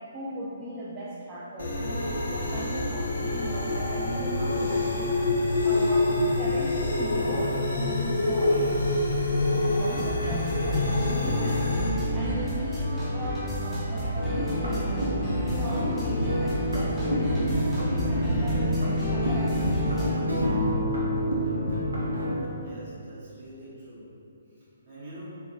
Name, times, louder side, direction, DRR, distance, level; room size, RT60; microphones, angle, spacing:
voice 1, 0.0-8.7 9.7-14.9 15.3-17.5 17.8-20.4, equal, 20° right, -7 dB, 0.3 m, -38 dB
sound 1, 1.6-11.9, left 2 dB, 75° left, 0.5 m, -26 dB
sound 2, 9.9-20.1, equal, 5° right, 0.8 m, -30 dB
sound 3, 14.1-22.5, equal, 90° right, 0.6 m, -28 dB
voice 2, 22.5-24.1 24.8-25.4, equal, 45° right, -10 dB, 1.3 m, -44 dB
4.0 x 2.2 x 2.5 m, 2.7 s
figure-of-eight pair, 135°, 0 cm